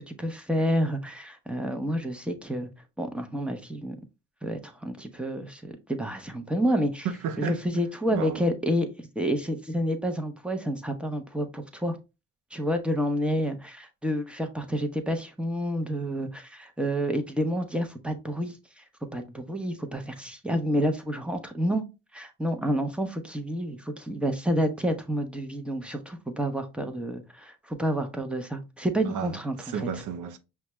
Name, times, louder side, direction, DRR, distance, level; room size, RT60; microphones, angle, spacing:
voice 1, 0.0-2.7 3.0-4.0 4.4-7.1 7.4-8.9 9.2-12.0 12.5-18.6 19.1-21.8 22.1-29.5 29.9-30.0, equal, 5° right, 0.8 m, -29 dB
voice 2, 7.0-7.6 8.1-8.4 29.1-30.4, right 7 dB, 80° right, 0.6 m, -33 dB
5.4 x 2.3 x 3.0 m
cardioid pair, 90°, 30 cm